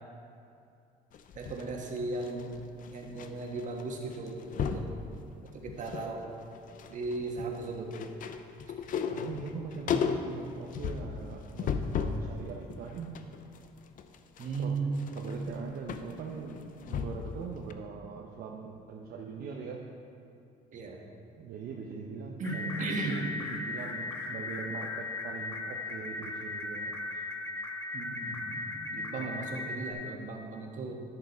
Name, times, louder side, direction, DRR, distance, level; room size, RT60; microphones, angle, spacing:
sound 1, 1.1-3.3 3.6-3.8 4.1-4.9 5.5-6.1 6.4-12.3 12.7-17.4 17.7-17.8, left 7 dB, 55° left, 0.6 m, -35 dB
voice 1, 1.3-2.6 2.9-4.9 5.5-6.2 6.9-7.9 14.4-15.1 20.7-21.0 22.4-23.2 27.9-30.9, right 3 dB, 50° right, 0 dB, 1.5 m, -36 dB
voice 2, 8.9-13.2 14.6-14.8 15.1-19.8 21.4-27.2, right 5 dB, 65° right, 0 dB, 0.8 m, -42 dB
sound 2, 22.4-29.9, left 2 dB, 15° left, 1.2 m, -37 dB
10.5 x 6.7 x 4.6 m, 2.6 s
cardioid pair, 110°, 17 cm